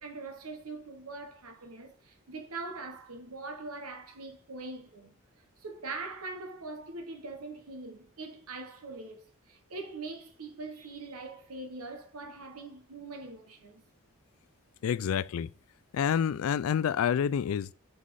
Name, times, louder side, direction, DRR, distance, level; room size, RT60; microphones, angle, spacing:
voice 1, 0.0-5.1 5.6-13.8, right 3 dB, 90° right, 1.1 m, -42 dB
voice 2, 14.8-15.5 15.9-17.7, left 8 dB, 75° left, 0.3 m, -28 dB
5.6 x 4.0 x 4.7 m
head